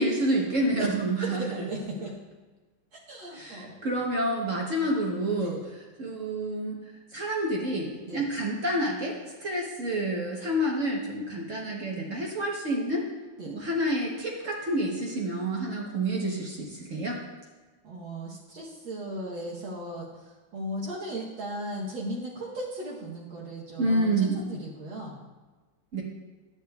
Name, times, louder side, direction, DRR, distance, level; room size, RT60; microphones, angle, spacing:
voice 1, 0.0-1.6 3.3-5.6 6.0-6.8 7.1-13.1 13.5-17.2 23.8-24.4 25.9-26.0, right 1 dB, 50° right, -2 dB, 1.1 m, -28 dB
voice 2, 1.2-2.1 3.1-3.8 5.4-5.6 8.1-8.3 13.4-13.5 17.8-25.3, right 1 dB, 70° right, -5 dB, 1.8 m, -37 dB
12.0 x 8.6 x 2.3 m, 1.3 s
omnidirectional pair, 2.3 m